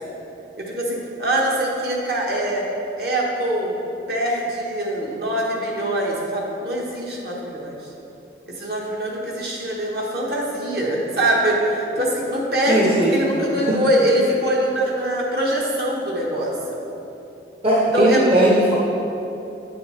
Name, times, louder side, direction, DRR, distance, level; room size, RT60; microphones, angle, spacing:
voice 1, 0.6-2.7 3.0-3.8 4.1-7.9 8.5-16.5 17.9-18.3, right 1 dB, 55° right, -3 dB, 1.3 m, -23 dB
voice 2, 12.7-13.1 17.6-18.7, right 1 dB, 30° right, -6 dB, 0.8 m, -17 dB
8.8 x 6.9 x 3.2 m, 2.9 s
head